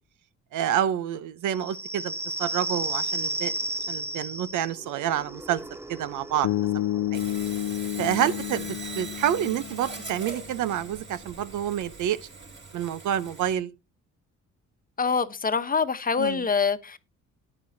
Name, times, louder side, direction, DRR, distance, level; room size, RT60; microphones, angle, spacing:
voice 1, 0.5-2.1 2.4-3.5 3.9-5.6 5.9-6.8 7.1-7.2 8.0-12.2 12.7-13.7 16.2-16.4, right 10 dB, 80° right, 0.8 m, -28 dB
sound 1, 1.5-8.8, right 2 dB, 10° right, 0.6 m, -34 dB
Bass guitar, 6.4-10.5, left 14 dB, 75° left, 0.5 m, -30 dB
Sawing, 7.1-13.6, right 4 dB, 40° right, 4.9 m, -41 dB
voice 2, 15.0-17.0, left 5 dB, 30° left, 1.0 m, -25 dB
13.5 x 9.7 x 2.7 m
cardioid pair, 90°, 30 cm